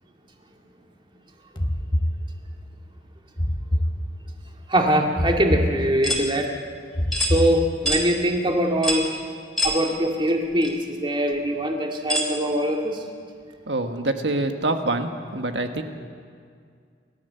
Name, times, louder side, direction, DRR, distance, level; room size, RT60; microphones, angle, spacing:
sound 1, 1.6-2.7 3.4-4.5 5.2-6.3 6.9-8.1, equal, 25° left, 1.2 m, -26 dB
voice 1, 4.7-6.5 7.2-9.1 9.6-13.0, equal, 30° right, 1 dB, 2.2 m, -22 dB
sound 2, 6.0-6.3 7.1-7.3 7.9-8.1 8.8-9.1 9.6-9.8 10.6-10.7 12.1-12.3, left 1 dB, ahead, 3.7 m, -24 dB
voice 2, 13.7-15.8, right 2 dB, 90° right, 6 dB, 1.6 m, -25 dB
29.5 x 13.0 x 6.9 m, 2.1 s
head